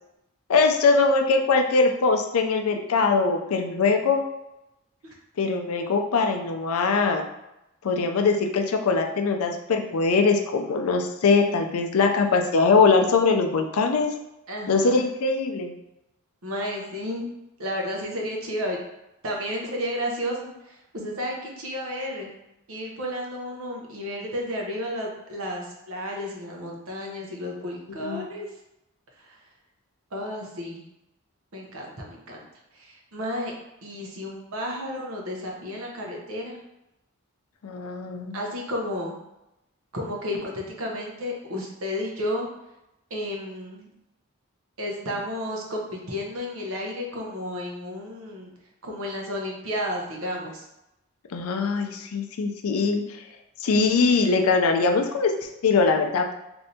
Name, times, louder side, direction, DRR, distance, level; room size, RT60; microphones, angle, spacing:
voice 1, 0.5-4.2 5.4-7.2 7.8-14.1 14.7-15.7 28.0-28.3 37.6-38.4 51.3-53.0 53.6-56.3, left 4 dB, 85° left, 4 dB, 0.4 m, -22 dB
voice 2, 14.5-15.2 16.4-17.3 17.6-18.8 19.2-22.3 22.7-28.5 29.2-29.4 30.1-30.8 31.5-32.4 32.7-33.5 33.8-36.6 38.3-39.1 39.9-42.5 43.1-43.9 44.8-48.5 48.8-50.7, equal, 75° right, -1 dB, 0.8 m, -32 dB
3.2 x 2.7 x 2.7 m, 0.89 s
head